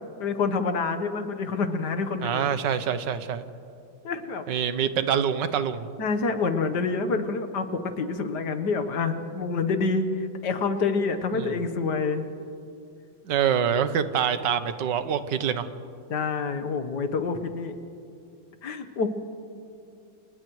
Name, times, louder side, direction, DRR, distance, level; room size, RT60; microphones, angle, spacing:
voice 1, 0.2-2.4 4.0-4.5 6.0-12.3 16.1-17.8 18.6-19.1, left 4 dB, 75° left, 8 dB, 1.8 m, -27 dB
voice 2, 2.2-3.4 4.5-5.9 11.3-11.5 13.2-15.7, right 8 dB, 80° right, 11 dB, 1.6 m, -25 dB
29.5 x 28.5 x 3.1 m, 2.5 s
omnidirectional pair, 1.9 m